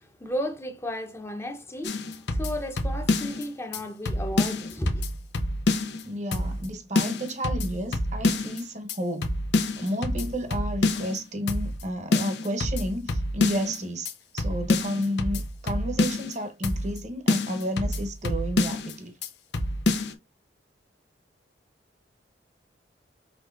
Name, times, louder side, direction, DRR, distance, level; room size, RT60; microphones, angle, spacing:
voice 1, 0.0-5.0, equal, 15° left, 0.8 m, -33 dB
sound 1, 1.8-3.4 3.7-3.8 4.1-6.0 6.3-6.7 7.0-8.6 8.9-9.0 9.2-11.2 11.5-11.8 12.1-13.8 14.1-14.2 14.4-16.3 16.6-17.0 17.3-18.9 19.2-19.3 19.5-20.1, left 2 dB, 70° left, 0.8 m, -27 dB
voice 2, 6.0-9.3 9.8-14.1 14.3-19.1, equal, 40° right, 0.9 m, -31 dB
6.0 x 3.2 x 2.5 m
head